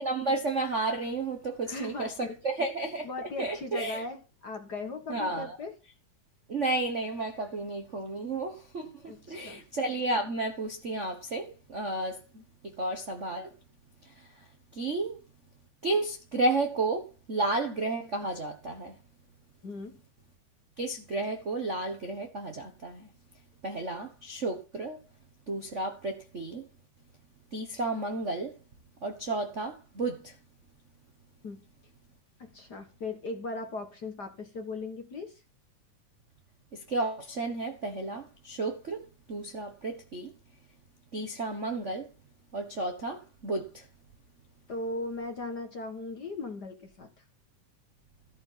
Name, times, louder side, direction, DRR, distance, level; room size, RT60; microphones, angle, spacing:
voice 1, 0.0-4.0 5.1-5.6 6.5-13.5 14.0-14.3 14.7-15.2 15.8-18.9 20.8-23.1 23.6-25.0 25.5-26.7 27.5-28.5 29.0-30.4 36.7-40.3 41.1-42.1 42.5-43.8, right 2 dB, 75° right, 0.6 m, -32 dB
voice 2, 1.7-2.2 3.0-5.8 9.1-9.6 19.6-20.0 31.4-31.6 32.4-35.4 44.7-47.1, left 2 dB, 45° left, 1.5 m, -38 dB
14.5 x 6.8 x 5.8 m
omnidirectional pair, 3.7 m